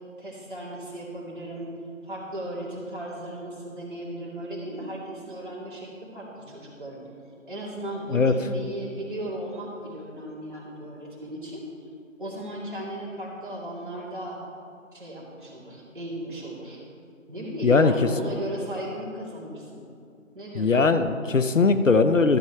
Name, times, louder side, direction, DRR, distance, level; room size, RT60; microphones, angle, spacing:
voice 1, 0.2-1.7 2.0-7.0 7.4-11.6 12.2-14.4 14.9-16.8 17.3-19.9 20.3-20.9, right 1 dB, 40° right, -6 dB, 2.4 m, -36 dB
voice 2, 20.6-22.4, left 4 dB, 70° left, 10 dB, 0.7 m, -20 dB
13.0 x 7.1 x 4.5 m, 2.5 s
figure-of-eight pair, 175°, 40 cm